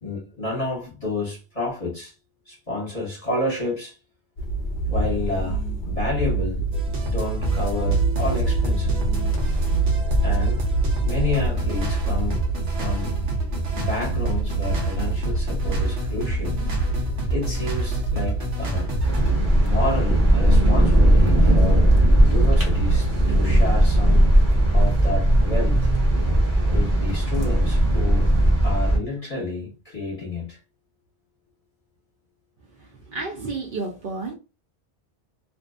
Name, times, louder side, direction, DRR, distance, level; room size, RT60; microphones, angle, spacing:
voice 1, 0.0-2.1 2.5-3.9 4.9-6.7 7.0-9.0 10.2-10.7 11.0-13.2 13.7-16.6 17.3-18.9 19.6-21.9 22.3-24.3 24.7-25.9 26.7-28.3 28.6-30.6, left 2 dB, 35° left, 1.0 m, -30 dB
sound 1, 4.4-23.5, right 3 dB, 55° left, 0.6 m, -26 dB
sound 2, 6.7-19.3, right 1 dB, 85° right, 1.0 m, -30 dB
sound 3, 19.0-29.0, right 1 dB, 15° right, 0.8 m, -18 dB
voice 2, 33.1-34.3, right 3 dB, 60° right, 0.6 m, -30 dB
2.6 x 2.2 x 2.3 m
omnidirectional pair, 1.1 m